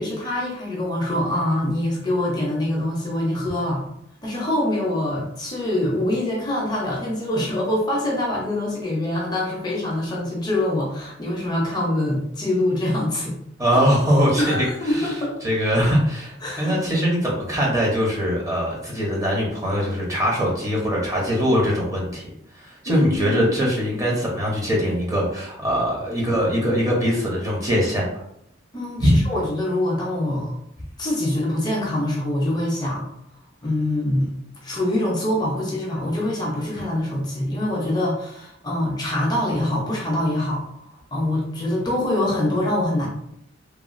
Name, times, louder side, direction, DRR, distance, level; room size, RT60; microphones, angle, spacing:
voice 1, 0.0-3.8 4.2-13.4 13.7-13.8 14.4-15.3 16.4-16.8 22.9-23.5 28.7-30.5 31.0-33.1 33.6-34.3 34.6-43.1, left 1 dB, 20° left, -3 dB, 0.6 m, -24 dB
voice 2, 13.6-14.4 15.4-22.2 22.6-28.1 29.0-29.2, equal, 15° right, -3 dB, 0.7 m, -21 dB
3.1 x 2.2 x 2.5 m, 0.75 s
head